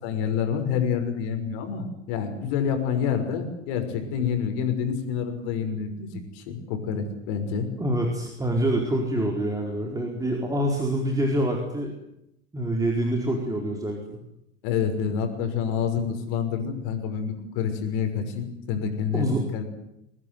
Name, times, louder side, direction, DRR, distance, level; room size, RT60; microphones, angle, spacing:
voice 1, 0.0-7.7 14.6-19.6, left 7 dB, 50° left, 6 dB, 6.1 m, -28 dB
voice 2, 7.8-12.0 12.5-14.2 19.1-19.4, right 1 dB, 10° right, 1 dB, 4.5 m, -26 dB
24.0 x 19.0 x 9.5 m, 0.82 s
hypercardioid pair, 95°, 38 cm